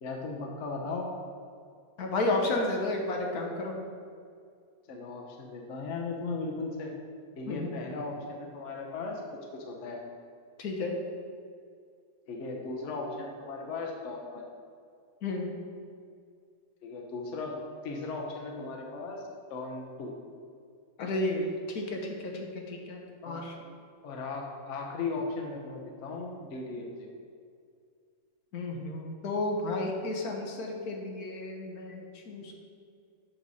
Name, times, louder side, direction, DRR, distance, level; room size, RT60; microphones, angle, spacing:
voice 1, 0.0-1.1 4.9-6.9 7.4-9.2 9.5-10.0 12.3-14.5 16.8-17.6 17.8-20.1 23.2-23.4 24.0-27.1, left 3 dB, 55° left, 1 dB, 1.1 m, -37 dB
voice 2, 2.0-3.7 7.5-7.8 10.6-11.0 15.2-15.5 21.0-23.5 28.5-32.5, left 2 dB, 70° left, 1 dB, 1.4 m, -32 dB
7.2 x 6.5 x 4.1 m, 2.2 s
omnidirectional pair, 1.7 m